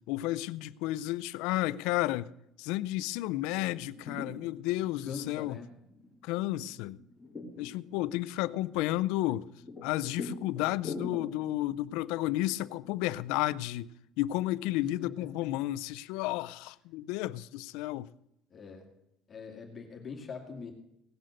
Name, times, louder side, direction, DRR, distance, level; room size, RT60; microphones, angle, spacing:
voice 1, 0.1-2.3 2.6-5.6 6.2-7.0 7.6-9.5 9.8-13.9 14.2-18.1, left 16 dB, 90° left, 0.5 m, -32 dB
sound 1, 3.7-13.4, left 3 dB, 10° left, 3.1 m, -46 dB
voice 2, 5.0-5.7 14.8-15.1 18.5-18.9 19.3-20.7, left 5 dB, 25° left, 2.2 m, -42 dB
17.5 x 7.8 x 6.5 m
cardioid pair, 165°, 0 cm